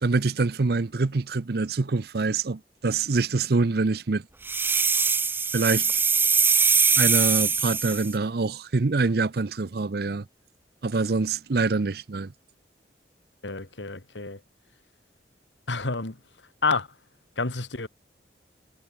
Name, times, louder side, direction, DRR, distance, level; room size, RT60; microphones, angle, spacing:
voice 1, 0.0-4.2 5.5-5.9 7.0-10.3 10.8-12.3, right 3 dB, 60° right, 0.6 m, -25 dB
sound 1, 4.5-8.1, right 5 dB, 10° right, 0.3 m, -22 dB
voice 2, 13.4-14.4 15.7-16.2 16.6-16.9 17.4-17.9, left 3 dB, 90° left, 2.3 m, -28 dB
head